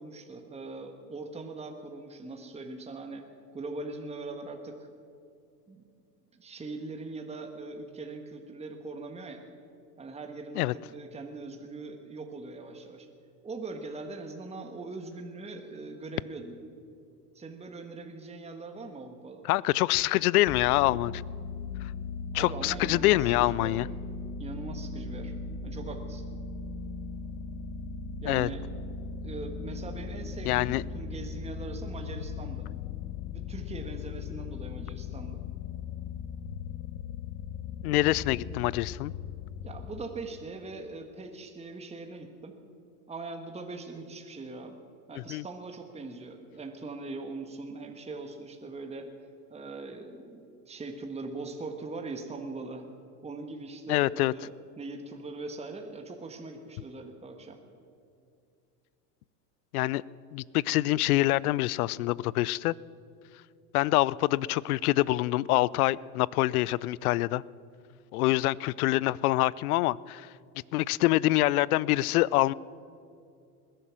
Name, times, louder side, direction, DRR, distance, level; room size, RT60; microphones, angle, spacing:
voice 1, 0.0-3.3 3.5-4.9 5.7-5.9 6.3-9.4 10.0-13.1 13.4-16.6 17.3-19.4 22.3-23.8 24.4-25.3 25.6-26.2 28.2-28.6 29.2-32.7 33.3-35.4 39.6-42.5 43.1-44.8 45.1-49.1 49.5-52.9 53.2-57.6, right 3 dB, 15° right, 4 dB, 1.5 m, -41 dB
voice 2, 19.4-21.2 21.8-21.9 22.3-23.9 28.3-28.5 30.5-30.8 37.8-39.1 45.3-45.4 53.9-54.3 59.7-60.0 60.3-62.7 63.7-67.4 68.1-70.3 70.7-72.5, left 17 dB, 65° left, 23 dB, 0.5 m, -25 dB
sound 1, 20.5-40.1, left 5 dB, 35° left, 0.8 m, -38 dB
20.5 x 11.5 x 6.0 m, 2.5 s
hypercardioid pair, 85°, 47 cm